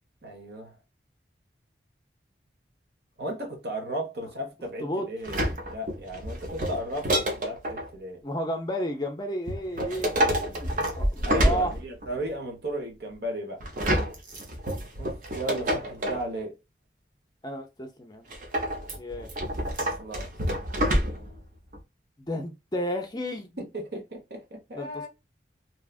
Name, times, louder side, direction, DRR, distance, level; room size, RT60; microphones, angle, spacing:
voice 1, 0.2-0.8 3.2-8.2 11.2-13.6 15.0-16.6 19.7-20.3 23.6-25.1, right 1 dB, 65° right, 1.0 m, -35 dB
sound 1, 5.2-7.9 9.5-12.2 13.6-16.3 18.3-21.4 21.7-21.8, equal, 45° right, 0.7 m, -28 dB
voice 2, 8.2-11.7 17.4-18.3 19.0-19.3 22.2-23.5 24.7-25.1, equal, 25° left, 0.5 m, -32 dB
2.7 x 2.3 x 2.3 m
head